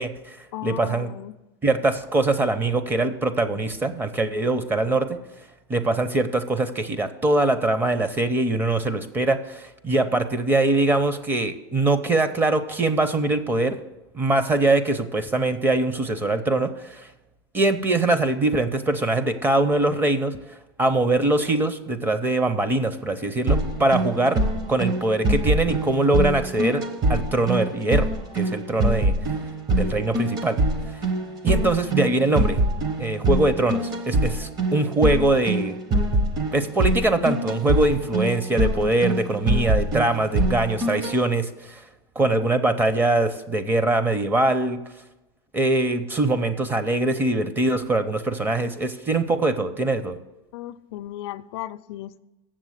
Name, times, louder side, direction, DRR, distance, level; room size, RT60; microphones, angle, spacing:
voice 1, 0.0-1.1 1.6-5.2 5.7-13.8 14.1-17.1 17.5-24.4 24.7-26.8 27.1-28.1 28.3-29.2 29.8-30.6 31.4-32.6 33.0-35.8 36.5-41.8 42.2-44.8 45.5-50.2, right 2 dB, 15° right, 11 dB, 0.7 m, -22 dB
voice 2, 0.5-1.3 31.5-31.7 50.5-52.2, left 14 dB, 75° left, 15 dB, 0.4 m, -35 dB
sound 1, 23.5-41.1, right 1 dB, 30° right, 1.1 m, -24 dB
7.4 x 7.0 x 8.0 m, 0.99 s
supercardioid pair, 140°, 13 cm